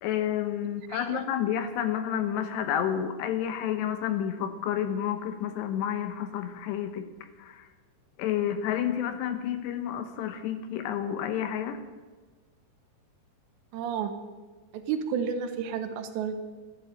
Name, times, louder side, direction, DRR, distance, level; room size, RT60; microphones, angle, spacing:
voice 1, 0.0-7.1 7.4-7.6 8.2-11.8, left 10 dB, 75° left, 8 dB, 2.8 m, -30 dB
voice 2, 0.9-1.2 13.7-14.1 14.7-16.4, right 7 dB, 80° right, 8 dB, 3.0 m, -31 dB
13.0 x 12.0 x 7.7 m, 1.4 s
omnidirectional pair, 5.4 m